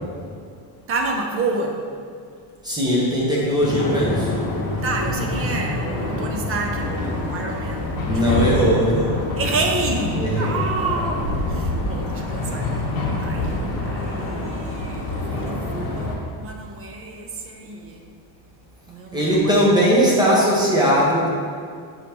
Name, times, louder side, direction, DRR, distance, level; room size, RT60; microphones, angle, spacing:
voice 1, 0.9-1.9 4.8-8.4 9.4-12.9 13.2-18.0 18.9-19.6, right 3 dB, 30° right, 2 dB, 0.4 m, -29 dB
voice 2, 2.6-4.3 8.0-9.2 10.1-10.5 19.1-21.3, equal, 10° right, -6 dB, 0.9 m, -19 dB
sound 1, 3.6-16.1, left 2 dB, 45° left, 1.3 m, -26 dB
6.3 x 5.2 x 2.9 m, 2.2 s
cardioid pair, 170°, 47 cm